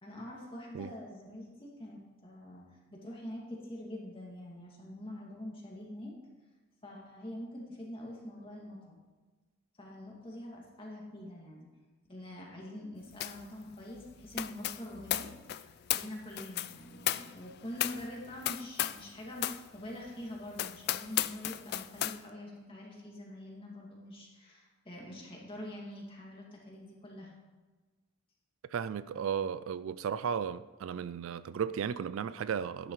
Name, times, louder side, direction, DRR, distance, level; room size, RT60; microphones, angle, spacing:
voice 1, 0.0-6.1 6.8-9.0 9.8-11.7 12.1-15.3 15.6-27.3, left 1 dB, 25° left, 2.2 m, -45 dB
sound 1, 13.2-13.5 13.7-19.1 19.4-19.6 20.1-20.2 20.5-22.2, left 13 dB, 50° left, 0.3 m, -35 dB
voice 2, 28.7-32.9, right 7 dB, 70° right, 0.3 m, -35 dB
12.0 x 11.0 x 3.1 m
head